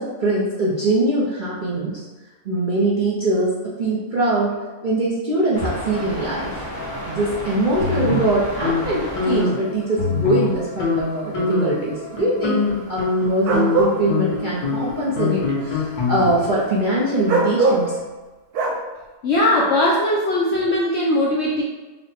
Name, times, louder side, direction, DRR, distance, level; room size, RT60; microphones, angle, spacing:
voice 1, 0.0-2.0 2.4-4.5 4.8-6.7 7.1-18.0, right 1 dB, 50° right, -8 dB, 0.6 m, -22 dB
sound 1, 5.5-18.0, equal, 10° left, 1.1 m, -36 dB
sound 2, 7.8-8.8 9.2-9.6 10.0-10.5 10.8-11.0 11.3-11.8 12.2-16.5, left 4 dB, 85° left, 1.6 m, -23 dB
sound 3, 13.5-13.9 17.3-17.8 18.5-18.8, right 3 dB, 85° right, 1.2 m, -19 dB
voice 2, 19.2-21.6, left 1 dB, 65° left, -4 dB, 0.6 m, -19 dB
4.4 x 2.1 x 4.2 m, 1.2 s
omnidirectional pair, 1.6 m